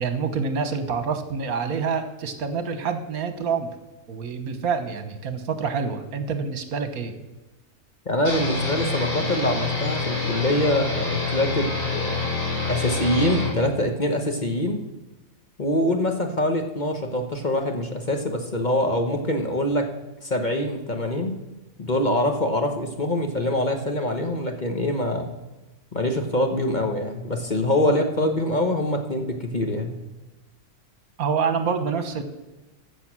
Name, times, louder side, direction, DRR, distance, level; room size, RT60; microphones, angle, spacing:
voice 1, 0.0-3.7 4.1-7.1 27.9-28.0 31.2-32.2, right 5 dB, 70° right, 9 dB, 1.5 m, -27 dB
voice 2, 8.1-12.3 12.7-14.8 15.6-19.8 20.2-21.3 21.8-25.3 25.9-30.0, left 1 dB, 35° left, 4 dB, 1.1 m, -24 dB
sound 1, 8.3-13.5, left 3 dB, 80° left, 4.6 m, -26 dB
15.0 x 6.5 x 6.1 m, 1.1 s
omnidirectional pair, 1.6 m